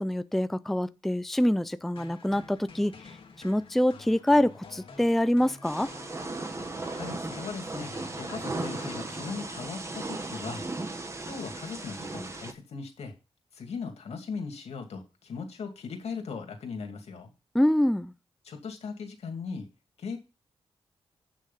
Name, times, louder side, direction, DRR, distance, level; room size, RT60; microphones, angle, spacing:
voice 1, 0.0-2.9 3.4-5.9 17.5-18.1, left 1 dB, ahead, 0.4 m, -25 dB
sound 1, 2.0-10.1, left 4 dB, 60° left, 1.9 m, -49 dB
Thunder / Rain, 5.6-12.5, right 2 dB, 25° right, 1.3 m, -36 dB
voice 2, 6.9-7.9 8.2-10.7 11.2-13.1 13.5-17.3 18.4-19.7 20.0-20.2, left 5 dB, 80° left, 2.4 m, -38 dB
8.5 x 6.4 x 5.4 m
wide cardioid pair, 105°, 11 cm